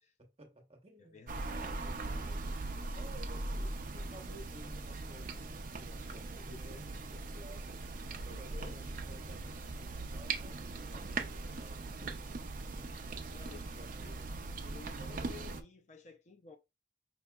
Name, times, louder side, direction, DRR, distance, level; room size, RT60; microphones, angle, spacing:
voice 1, 0.2-2.6 2.9-7.7 8.2-12.2 13.4-14.3, right 1 dB, 35° right, 1.0 m, -55 dB
voice 2, 1.0-1.6 8.2-8.8 13.3-13.7 14.0-14.2 14.6-16.6, left 4 dB, 45° left, 0.5 m, -53 dB
sound 1, 1.3-15.6, right 3 dB, 50° right, 0.5 m, -40 dB
5.4 x 2.8 x 2.3 m
head